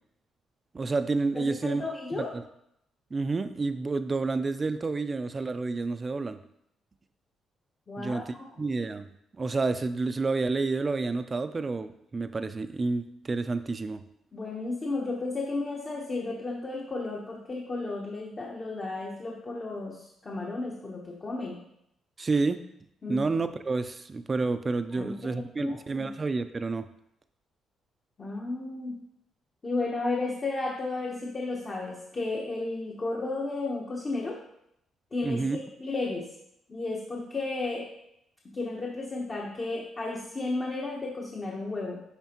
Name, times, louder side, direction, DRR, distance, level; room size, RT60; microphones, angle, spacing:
voice 1, 0.7-1.8 2.1-2.4 3.1-6.4 8.0-9.1 9.4-14.0 22.2-22.6 23.1-26.9 35.2-35.6, right 3 dB, 30° right, 10 dB, 0.4 m, -29 dB
voice 2, 1.3-2.3 7.9-8.5 14.3-21.6 23.0-23.3 24.9-26.1 28.2-29.0 29.6-34.4 35.1-36.3 36.7-37.9 38.5-42.0, left 3 dB, 35° left, -2 dB, 0.9 m, -33 dB
10.0 x 3.4 x 3.0 m, 0.77 s
cardioid pair, 90°, 0 cm